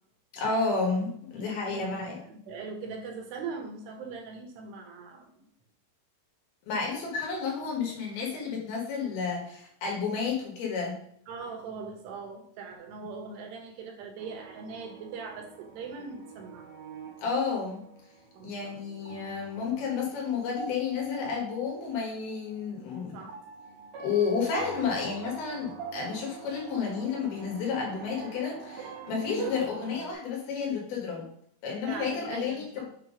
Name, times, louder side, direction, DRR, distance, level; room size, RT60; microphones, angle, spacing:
voice 1, 0.3-2.2 6.7-10.9 17.2-17.8 18.4-23.2 24.0-31.2 31.6-32.8, left 5 dB, 65° left, -2 dB, 3.3 m, -31 dB
voice 2, 1.4-5.5 11.3-16.7 18.3-18.8 23.1-23.4 29.1-29.5 31.9-32.9, right 4 dB, 80° right, 1 dB, 3.3 m, -41 dB
sound 1, 14.2-30.1, right 5 dB, 60° right, 1.9 m, -45 dB
7.6 x 3.0 x 5.1 m, 0.68 s
omnidirectional pair, 4.7 m